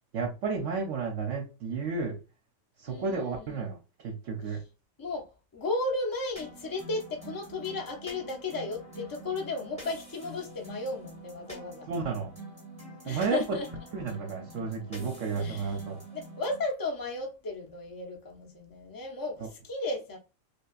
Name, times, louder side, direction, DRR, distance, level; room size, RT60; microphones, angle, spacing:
voice 1, 0.1-2.2 2.8-4.6 11.9-12.3 13.0-13.6 13.9-16.0, right 5 dB, 65° right, 0.9 m, -32 dB
voice 2, 2.9-3.6 4.5-4.6 5.0-11.9 13.0-13.7 15.4-15.8 16.1-20.2, left 2 dB, 30° left, 0.4 m, -34 dB
sound 1, 6.4-16.6, right 1 dB, 5° left, 1.4 m, -46 dB
5.1 x 2.2 x 2.4 m
omnidirectional pair, 1.5 m